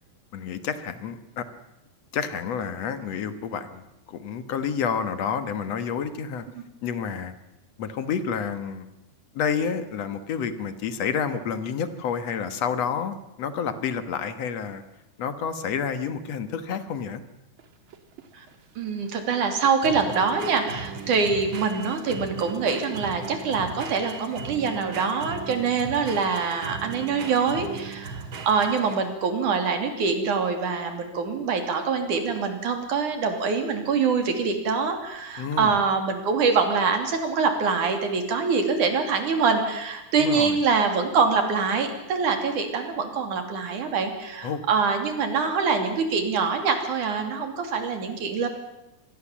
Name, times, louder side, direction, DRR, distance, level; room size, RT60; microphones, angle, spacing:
voice 1, 0.3-1.5 2.1-6.5 6.8-7.3 7.8-8.9 9.3-14.8 15.2-17.2 35.4-35.8 40.2-40.6 44.4-44.6, left 6 dB, 60° left, 10 dB, 2.4 m, -29 dB
sound 1, 17.6-29.2, right 5 dB, 50° right, 2.0 m, -38 dB
voice 2, 18.8-48.5, right 5 dB, 75° right, 6 dB, 4.4 m, -24 dB
26.0 x 20.5 x 7.4 m, 0.93 s
omnidirectional pair, 3.5 m